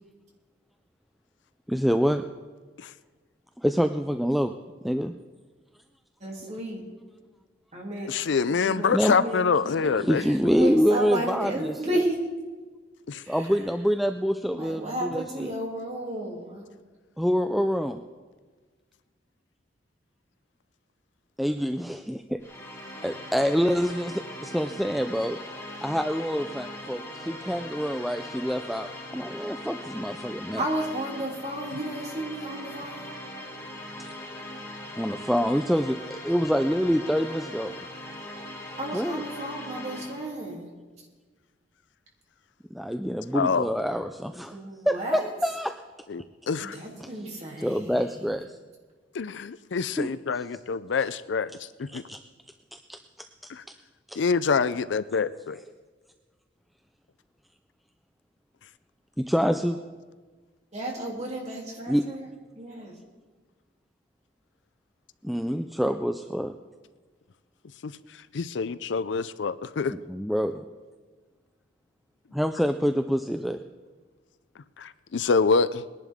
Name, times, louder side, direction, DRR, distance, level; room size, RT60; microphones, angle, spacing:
voice 1, 1.7-2.2 3.6-4.5 4.8-5.1 8.9-9.1 10.0-11.9 13.3-15.5 17.2-18.0 21.4-22.4 23.0-25.4 25.8-30.6 34.0-34.1 35.0-37.7 38.9-39.2 42.7-44.6 44.9-45.7 47.0-47.1 47.6-48.6 50.0-50.1 51.9-52.2 52.7-53.3 54.1-54.2 59.2-59.8 61.9-62.0 65.2-66.5 69.9-70.6 72.3-73.6, equal, ahead, 7 dB, 0.3 m, -26 dB
voice 2, 6.2-6.8 7.7-8.1 8.5-9.5 9.8-12.2 13.2-13.5 14.4-16.6 30.5-33.2 38.8-40.7 44.5-45.3 46.6-48.3 60.7-62.3 62.5-63.0, right 1 dB, 35° right, -2 dB, 2.9 m, -33 dB
voice 3, 8.1-10.2 13.1-13.2 43.3-43.7 46.1-46.8 49.1-52.0 53.5-53.6 54.2-55.6 67.8-67.9 68.3-69.9 74.8-75.8, left 5 dB, 75° left, 15 dB, 0.5 m, -26 dB
sound 1, 22.4-40.4, left 1 dB, 15° left, 1.8 m, -40 dB
21.0 x 11.0 x 3.6 m, 1.4 s
head